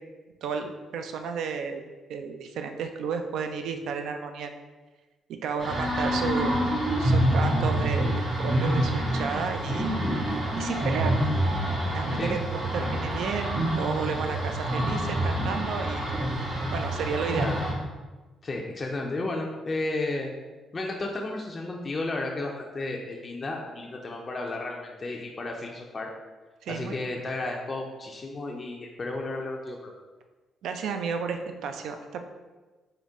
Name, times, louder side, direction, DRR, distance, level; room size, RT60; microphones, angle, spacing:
voice 1, 0.4-1.8 2.1-4.5 5.4-6.6 7.0-9.9 10.5-11.2 11.8-16.1 16.7-17.6 26.6-27.0 30.6-32.2, right 6 dB, 80° right, 6 dB, 0.3 m, -32 dB
sound 1, 5.6-17.7, right 1 dB, 45° right, 1.3 m, -27 dB
voice 2, 18.4-20.3 20.7-26.1 26.7-29.9, left 2 dB, 35° left, 0 dB, 0.4 m, -33 dB
3.8 x 2.1 x 3.5 m, 1.3 s
cardioid pair, 90°, 0 cm